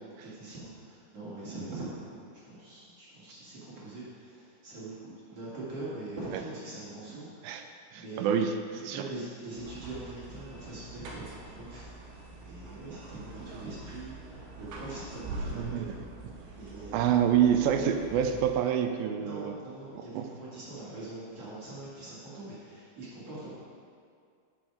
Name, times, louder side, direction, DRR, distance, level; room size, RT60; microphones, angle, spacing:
voice 1, 0.2-16.0 16.5-17.3 17.6-17.8 19.1-23.5, right 2 dB, 45° right, -9 dB, 3.2 m, -43 dB
voice 2, 7.9-9.0 15.6-15.9 16.9-19.6 20.0-20.2, right 8 dB, 85° right, 6 dB, 2.4 m, -27 dB
sound 1, 9.6-18.6, right 2 dB, 65° right, 2.6 m, -44 dB
14.0 x 6.3 x 5.0 m, 2.2 s
omnidirectional pair, 4.3 m